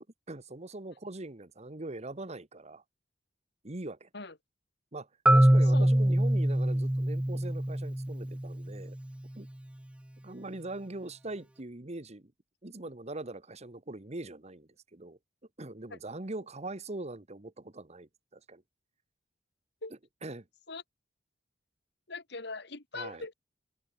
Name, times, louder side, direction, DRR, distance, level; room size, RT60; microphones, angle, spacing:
voice 1, 0.3-2.8 3.6-4.1 4.9-9.0 9.3-9.5 10.2-12.3 12.6-15.2 15.6-18.6 20.2-20.4 22.9-23.2, right 2 dB, 40° right, 1.4 m, -42 dB
Marimba xylophone, 5.3-9.1, right 1 dB, 5° right, 0.4 m, -25 dB
voice 2, 22.1-23.3, left 3 dB, 70° left, 3.1 m, -41 dB
open air
head